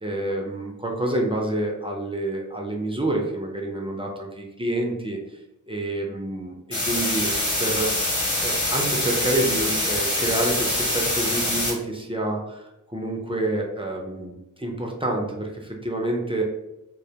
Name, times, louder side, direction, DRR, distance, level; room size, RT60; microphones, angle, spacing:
voice 1, 0.0-5.4 5.7-6.5 6.8-7.3 7.6-7.9 8.4-16.4, right 1 dB, 15° right, 0 dB, 0.4 m, -28 dB
sound 1, 6.7-11.7, left 1 dB, 60° left, 0.8 m, -24 dB
2.2 x 2.1 x 2.7 m, 0.92 s
wide cardioid pair, 40°, 33 cm